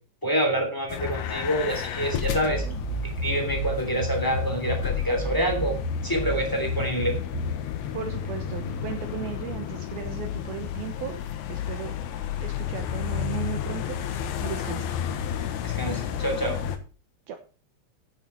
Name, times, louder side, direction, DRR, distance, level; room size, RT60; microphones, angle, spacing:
voice 1, 0.2-2.6 3.2-5.7 6.0-7.2 15.6-16.6, right 1 dB, 10° left, 2 dB, 1.2 m, -27 dB
sound 1, 0.9-16.8, left 9 dB, 70° left, 2.5 m, -32 dB
sound 2, 2.2-7.6, left 1 dB, 45° left, 2.2 m, -31 dB
voice 2, 2.4-2.8 7.9-11.2 11.5-11.9 12.4-14.9 17.3-17.4, right 9 dB, 80° right, 7 dB, 2.2 m, -36 dB
10.5 x 9.4 x 4.5 m, 0.36 s
omnidirectional pair, 5.8 m